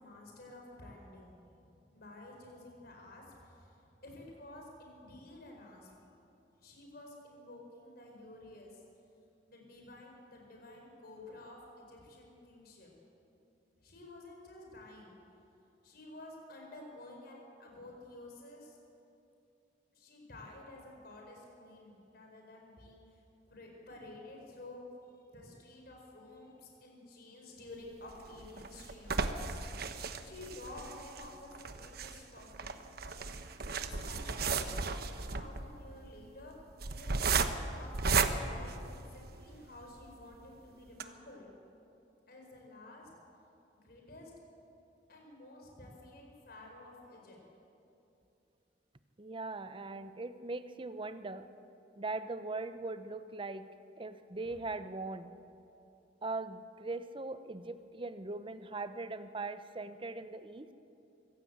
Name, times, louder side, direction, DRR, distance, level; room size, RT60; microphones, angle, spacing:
voice 1, 0.0-1.4 1.9-5.9 6.6-8.8 9.5-12.9 13.8-15.2 15.8-18.8 19.9-24.8 25.3-29.2 30.2-32.8 33.9-36.5 36.9-41.5 42.3-43.1 43.8-44.3 45.1-47.4, left 2 dB, 55° left, 0 dB, 4.6 m, -52 dB
sound 1, 28.1-39.5 40.0-40.1 40.4-40.5 40.9-41.0, right 4 dB, 55° right, 1.1 m, -35 dB
voice 2, 49.2-51.5 52.0-53.7 54.0-55.3 56.2-60.7, right 3 dB, 30° right, 11 dB, 0.8 m, -40 dB
24.5 x 16.0 x 8.0 m, 2.8 s
head